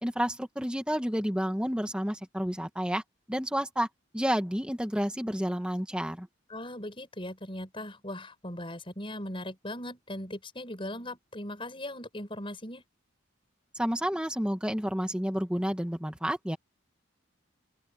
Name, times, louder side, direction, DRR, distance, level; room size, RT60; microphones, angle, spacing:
voice 1, 0.0-3.0 3.3-3.9 4.1-6.3 13.7-16.6, equal, 5° right, 1.6 m, -30 dB
voice 2, 6.5-12.8, left 1 dB, 25° left, 7.5 m, -39 dB
open air
head